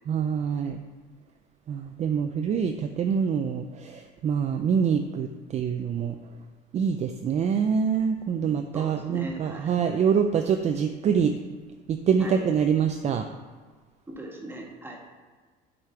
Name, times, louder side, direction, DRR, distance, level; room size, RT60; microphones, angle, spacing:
voice 1, 0.1-0.8 1.7-6.2 6.7-11.3 11.9-13.3, right 7 dB, 40° right, 6 dB, 0.5 m, -25 dB
voice 2, 8.7-9.8 12.2-12.4 14.1-15.0, right 2 dB, 10° right, 0 dB, 1.5 m, -39 dB
8.1 x 5.0 x 4.4 m, 1.5 s
cardioid pair, 115°, 18 cm